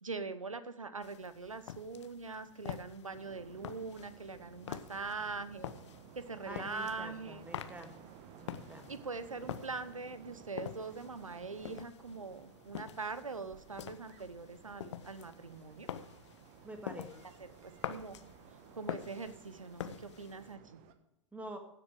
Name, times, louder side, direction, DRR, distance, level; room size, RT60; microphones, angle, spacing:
voice 1, 0.0-5.7 6.1-7.5 8.9-15.9 17.6-18.2 18.7-20.8, right 4 dB, 85° right, 13 dB, 1.0 m, -42 dB
sound 1, 1.0-20.6, left 9 dB, 60° left, 0.9 m, -47 dB
sound 2, 3.1-21.0, right 9 dB, 40° right, 1.3 m, -57 dB
voice 2, 6.5-7.9 8.4-8.9 16.6-17.1 21.3-21.6, right 1 dB, 10° right, 6 dB, 1.9 m, -46 dB
16.0 x 7.9 x 4.8 m, 0.78 s
figure-of-eight pair, 95°, 17 cm